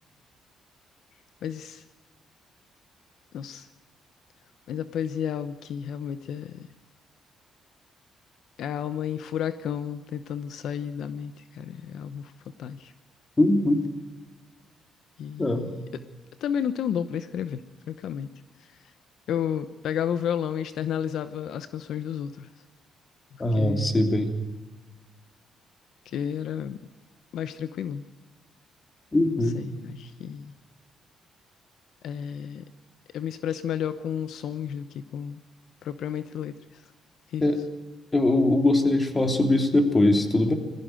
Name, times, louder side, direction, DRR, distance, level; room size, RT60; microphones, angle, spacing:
voice 1, 1.4-1.8 3.3-3.7 4.7-6.7 8.6-12.9 15.2-15.7 16.4-17.6 17.9-18.3 18.6-18.9 19.3-22.5 23.3-24.1 26.0-26.8 27.3-28.0 29.3-30.5 32.0-32.7 33.1-35.4 35.8-36.9 37.3-37.5, left 8 dB, 75° left, 12 dB, 0.9 m, -32 dB
voice 2, 13.4-13.8 15.4-15.7 23.4-24.3 29.1-29.6 37.4-37.5 38.1-40.6, left 1 dB, 25° left, 6 dB, 3.3 m, -21 dB
20.5 x 15.0 x 9.2 m, 1.2 s
cardioid pair, 90°, 0 cm